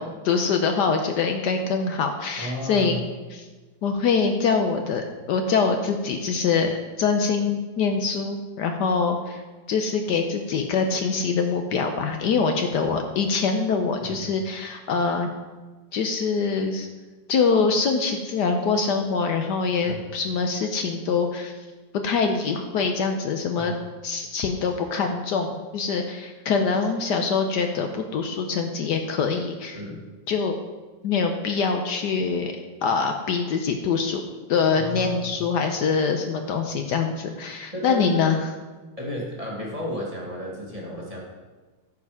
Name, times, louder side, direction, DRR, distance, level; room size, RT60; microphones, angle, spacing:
voice 1, 0.2-3.0 3.3-3.5 3.8-9.4 9.7-15.3 15.9-16.9 17.3-21.5 22.0-23.7 24.0-29.8 30.3-30.6 31.0-32.5 32.8-34.2 34.5-38.5, left 5 dB, 70° left, 5 dB, 1.2 m, -24 dB
voice 2, 2.4-3.0 14.0-14.3 19.8-20.1 23.5-23.7 29.7-30.1 34.8-35.4 37.7-38.4 39.0-41.2, left 1 dB, 20° right, -3 dB, 1.5 m, -33 dB
13.0 x 4.9 x 4.8 m, 1.3 s
omnidirectional pair, 2.0 m